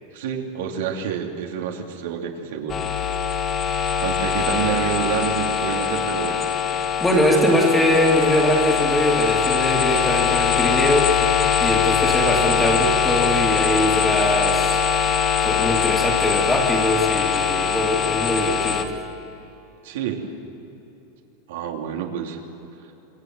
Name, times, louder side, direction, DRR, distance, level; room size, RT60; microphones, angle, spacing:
voice 1, 0.1-2.8 4.0-6.5 7.4-7.6 19.8-20.3 21.5-22.4, right 8 dB, 70° right, 2 dB, 3.2 m, -28 dB
sound 1, 2.7-18.8, left 7 dB, 20° left, 1.4 m, -22 dB
voice 2, 7.0-11.2 11.6-18.9, left 1 dB, 5° left, 0 dB, 2.6 m, -22 dB
26.5 x 23.5 x 7.8 m, 3.0 s
supercardioid pair, 160°, 0 cm